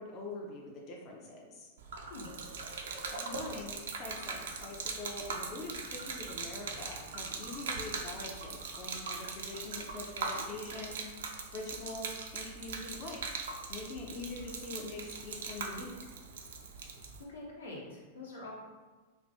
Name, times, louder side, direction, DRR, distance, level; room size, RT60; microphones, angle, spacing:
voice 1, 0.0-1.7 3.1-11.0 11.5-13.4 13.7-16.1, left 2 dB, 35° left, -2 dB, 0.4 m, -44 dB
Gurgling / Liquid, 1.8-17.2, right 4 dB, 65° right, 0.3 m, -41 dB
voice 2, 17.3-18.5, left 2 dB, 70° left, -4 dB, 0.8 m, -45 dB
3.1 x 2.2 x 2.7 m, 1.3 s
figure-of-eight pair, 95°, 0 cm